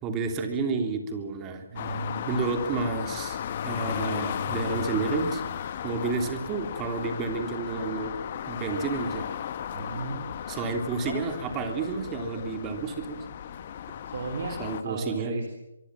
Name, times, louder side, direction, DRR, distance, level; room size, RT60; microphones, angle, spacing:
voice 1, 0.0-3.4 3.6-5.4 5.8-8.1 8.5-9.2 10.5-13.2 14.6-15.4, right 4 dB, 15° right, 5 dB, 3.3 m, -30 dB
voice 2, 1.7-2.6 9.7-10.2 14.1-15.5, right 4 dB, 50° right, 5 dB, 3.5 m, -35 dB
sound 1, 1.8-14.8, left 9 dB, 35° left, 1.5 m, -35 dB
24.0 x 24.0 x 7.6 m, 1.0 s
figure-of-eight pair, 145°, 0 cm